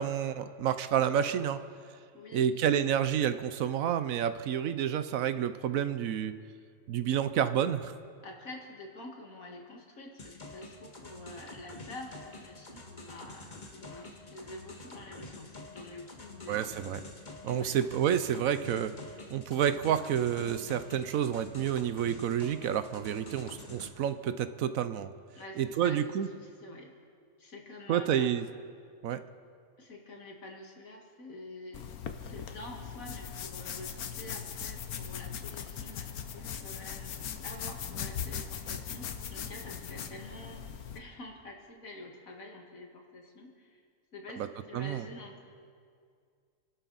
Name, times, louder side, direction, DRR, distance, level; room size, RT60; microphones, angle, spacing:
voice 1, 0.0-1.6 2.3-6.3 6.9-7.9 16.5-17.0 17.4-18.9 19.3-25.1 25.6-26.3 27.9-28.4 29.0-29.2 44.4-44.5 44.7-45.0, right 9 dB, 75° right, 12 dB, 1.1 m, -29 dB
voice 2, 2.1-2.6 8.2-16.7 17.6-17.8 25.4-26.9 27.4-28.3 29.8-31.9 32.2-40.7 40.9-43.8 44.1-45.5, left 1 dB, 70° left, 1 dB, 2.3 m, -47 dB
sound 1, 10.2-23.9, left 2 dB, 35° left, 1.6 m, -48 dB
sound 2, 31.7-41.0, left 8 dB, 90° left, 1.3 m, -40 dB
27.5 x 12.5 x 4.1 m, 2.2 s
omnidirectional pair, 1.5 m